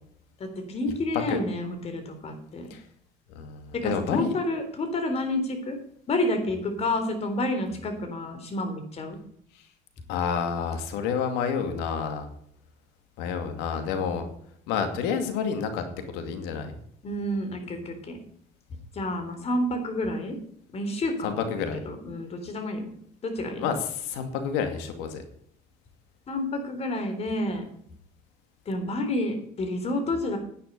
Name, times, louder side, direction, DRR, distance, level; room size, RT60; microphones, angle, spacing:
voice 1, 0.4-2.7 3.7-5.8 6.1-9.2 17.0-18.2 18.9-20.4 20.7-22.9 23.2-23.7 26.3-27.7 28.7-30.4, left 1 dB, 40° left, 6 dB, 3.8 m, -29 dB
voice 2, 3.3-4.3 10.1-12.3 13.2-14.3 14.7-15.8 16.1-16.8 21.2-21.8 23.6-25.2, left 6 dB, 85° left, 7 dB, 2.4 m, -29 dB
10.5 x 9.7 x 5.3 m, 0.66 s
cardioid pair, 110°, 17 cm